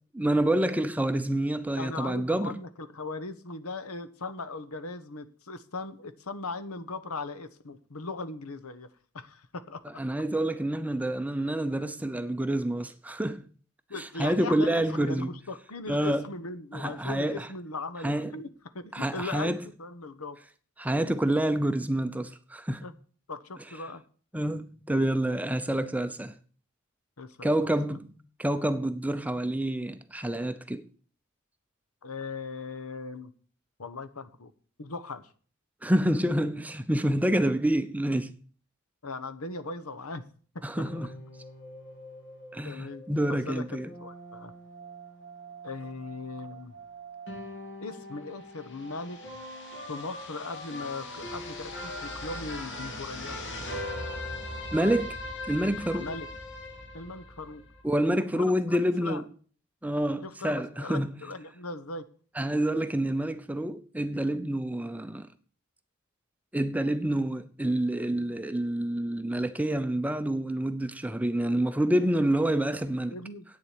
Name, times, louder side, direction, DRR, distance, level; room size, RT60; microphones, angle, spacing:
voice 1, 0.1-2.6 10.0-13.5 14.2-15.3 15.9-16.3 16.7-17.5 18.0-18.3 18.9-19.6 20.8-22.9 24.3-26.3 27.4-30.9 35.8-38.3 40.6-41.2 42.5-43.9 54.7-55.2 55.5-56.1 57.8-59.2 59.8-61.1 62.4-65.3 66.5-73.2, right 1 dB, 5° right, 0.6 m, -28 dB
voice 2, 1.8-8.9 9.1-10.0 13.9-18.5 18.7-19.5 19.8-20.4 22.8-22.9 23.3-24.0 27.2-28.0 32.0-33.3 33.8-34.5 34.8-35.3 39.0-40.2 40.8-40.9 42.6-43.0 43.3-43.6 44.0-44.5 45.6-46.7 47.8-49.2 49.9-53.4 56.0-56.3 56.9-57.6 58.3-59.2 60.2-62.1 73.1-73.4, left 3 dB, 80° left, 1.1 m, -39 dB
sound 1, 40.7-57.8, left 1 dB, 60° left, 2.5 m, -41 dB
8.8 x 7.3 x 8.3 m
head